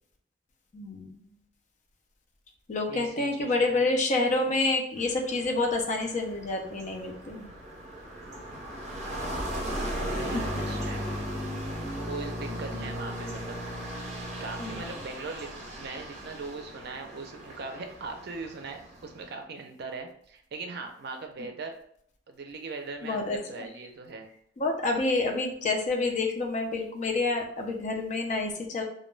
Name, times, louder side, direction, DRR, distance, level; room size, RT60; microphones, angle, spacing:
voice 1, 0.7-1.4 2.7-7.5 10.3-10.4 12.5-12.8 14.6-14.8 23.0-23.4 24.6-28.8, left 2 dB, 40° left, 2 dB, 0.4 m, -28 dB
voice 2, 2.9-3.9 9.9-11.1 12.1-13.6 14.4-15.5 15.8-21.7 22.3-24.3, right 3 dB, 60° right, 4 dB, 0.4 m, -40 dB
sound 1, 5.0-19.3, equal, 40° right, 0.9 m, -37 dB
2.2 x 2.1 x 3.1 m, 0.64 s
head